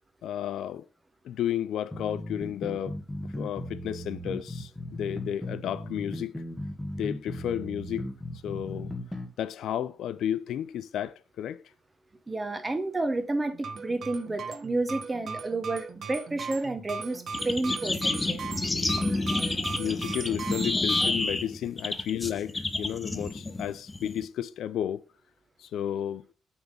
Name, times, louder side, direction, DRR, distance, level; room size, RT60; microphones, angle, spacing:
voice 1, 0.2-0.9 1.2-6.3 6.9-8.1 8.4-8.9 9.4-11.6 19.8-25.0 25.6-26.3, left 10 dB, 75° left, 0.4 m, -32 dB
sound 1, 1.9-9.3, left 1 dB, 5° left, 1.6 m, -37 dB
voice 2, 12.3-18.5, right 2 dB, 20° right, 0.9 m, -31 dB
sound 2, 13.5-21.1, right 5 dB, 60° right, 0.9 m, -38 dB
sound 3, 17.3-24.3, left 2 dB, 20° left, 0.6 m, -29 dB
7.1 x 3.6 x 5.3 m
cardioid pair, 90°, 0 cm